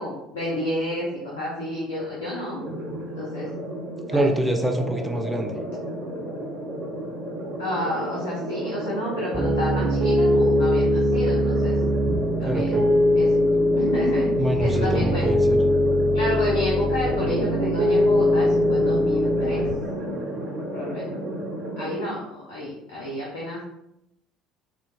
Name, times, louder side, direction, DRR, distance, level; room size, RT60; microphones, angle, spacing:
voice 1, 0.0-2.6 3.2-3.5 4.1-4.3 7.6-11.7 12.4-12.8 13.2-13.3 13.7-15.6 16.1-19.6 20.7-21.2 21.8-23.6, left 1 dB, 75° left, -6 dB, 0.6 m, -30 dB
sound 1, 2.5-22.0, right 1 dB, 55° right, 0.9 m, -33 dB
voice 2, 4.1-5.5 12.4-12.9 14.4-15.6, right 1 dB, 5° right, 3 dB, 0.5 m, -25 dB
Piano, 9.3-19.7, left 1 dB, 30° right, 1.1 m, -21 dB
3.9 x 2.1 x 2.2 m, 0.82 s
figure-of-eight pair, 60°, 0 cm